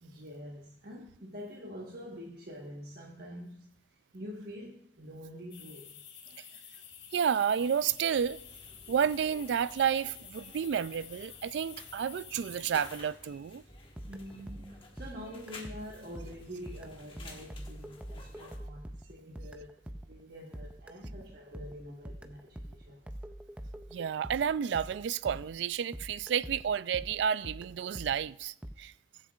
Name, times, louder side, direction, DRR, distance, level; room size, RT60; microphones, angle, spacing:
voice 1, 0.0-3.7 4.1-6.0 6.2-6.4 14.1-19.7 20.1-23.0, equal, 55° right, 1.3 m, -46 dB
sound 1, 5.5-13.0, left 8 dB, 70° left, 1.5 m, -50 dB
voice 2, 7.1-8.4 8.9-13.6 23.9-28.9, right 8 dB, 75° right, 0.3 m, -31 dB
sound 2, 8.1-18.6, left 2 dB, 30° left, 1.3 m, -53 dB
sound 3, 13.7-25.7 25.9-28.7, equal, 5° right, 0.4 m, -45 dB
21.5 x 8.1 x 2.4 m
head